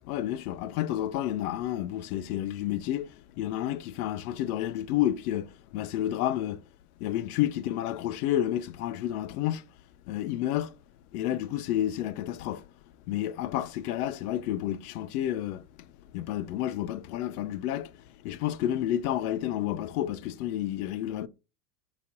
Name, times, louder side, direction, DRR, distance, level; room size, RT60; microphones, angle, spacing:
voice 1, 0.1-6.6 7.0-9.7 10.1-10.7 11.1-12.7 13.1-15.6 16.1-21.3, left 12 dB, 70° left, 0.6 m, -30 dB
4.9 x 3.0 x 2.9 m
hypercardioid pair, 115°, 47 cm